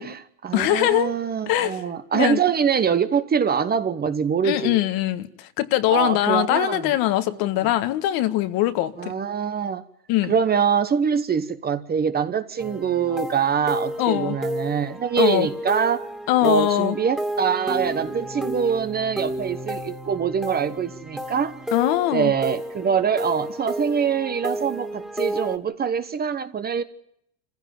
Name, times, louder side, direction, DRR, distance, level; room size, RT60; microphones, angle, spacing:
voice 1, 0.0-4.8 5.9-6.9 7.4-7.5 9.0-9.8 10.2-16.1 16.4-21.5 22.1-26.8, right 7 dB, 20° right, 1.1 m, -24 dB
voice 2, 0.5-1.1 1.5-1.8 2.1-2.4 4.4-9.1 10.1-10.3 14.0-14.4 15.2-15.5 16.3-17.0 21.7-22.3, left 14 dB, 50° left, 1.6 m, -22 dB
sound 1, 12.6-25.6, equal, ahead, 2.4 m, -32 dB
26.5 x 15.5 x 9.4 m
supercardioid pair, 130°, 45 cm